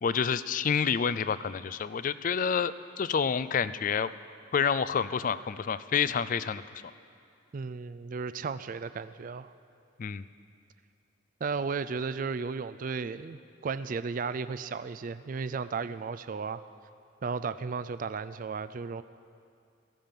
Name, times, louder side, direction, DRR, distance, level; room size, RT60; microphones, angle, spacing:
voice 1, 0.0-4.1 4.5-6.6 10.0-10.2, left 6 dB, 40° left, 15 dB, 0.3 m, -28 dB
voice 2, 7.5-9.5 11.4-16.6 17.2-19.0, right 5 dB, 45° right, 13 dB, 0.4 m, -34 dB
17.0 x 15.0 x 5.3 m, 2.4 s
head